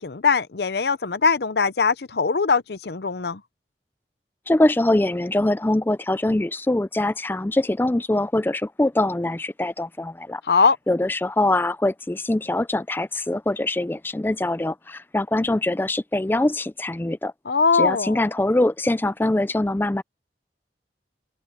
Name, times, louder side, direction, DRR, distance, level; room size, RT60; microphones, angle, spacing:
voice 1, 0.0-3.4 10.4-10.8 17.5-18.2, left 5 dB, 65° left, 0.7 m, -21 dB
voice 2, 4.5-10.4 10.9-17.3 17.7-20.0, left 1 dB, 10° left, 0.4 m, -23 dB
head